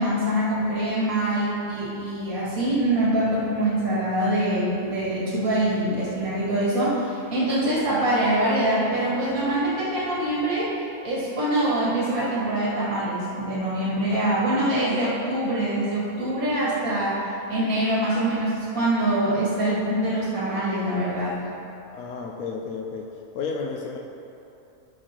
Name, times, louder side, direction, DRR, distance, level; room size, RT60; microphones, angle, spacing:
voice 1, 0.0-21.5, right 1 dB, 85° right, -8 dB, 2.2 m, -24 dB
voice 2, 21.9-23.1 23.3-24.0, left 5 dB, 90° left, 0 dB, 1.2 m, -32 dB
13.5 x 6.4 x 2.9 m, 2.8 s
omnidirectional pair, 1.5 m